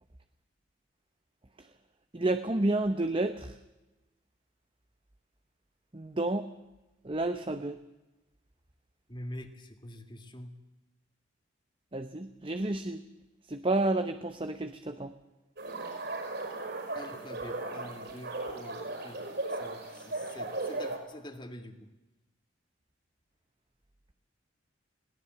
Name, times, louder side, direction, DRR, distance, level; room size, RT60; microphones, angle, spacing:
voice 1, 2.1-3.5 5.9-6.5 7.0-7.8 11.9-13.0 13.5-15.1, right 2 dB, 25° right, 9 dB, 0.8 m, -30 dB
voice 2, 9.1-10.5 16.9-19.2 19.6-21.8, left 1 dB, 25° left, 7 dB, 2.0 m, -45 dB
sound 1, 15.6-21.0, right 2 dB, 55° right, 5.6 m, -37 dB
20.5 x 18.0 x 7.8 m, 1.0 s
head